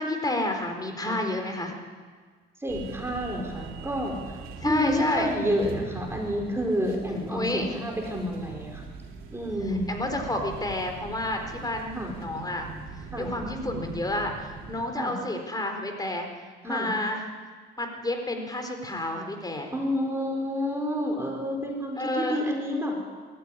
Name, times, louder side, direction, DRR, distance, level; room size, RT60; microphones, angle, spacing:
voice 1, 0.0-1.7 4.6-5.3 7.3-7.7 9.9-12.7 13.2-16.3 16.6-17.2 17.8-19.7 22.0-22.4, left 1 dB, 20° left, 4 dB, 4.2 m, -30 dB
voice 2, 2.6-4.4 4.6-8.9 9.3-9.9 11.9-12.1 13.1-13.3 14.9-15.1 16.6-16.9 19.7-22.9, equal, 10° right, 0 dB, 4.8 m, -29 dB
sound 1, 2.7-14.8, right 4 dB, 85° right, 3.2 m, -41 dB
20.5 x 14.5 x 9.9 m, 1.5 s
cardioid pair, 90°, 20 cm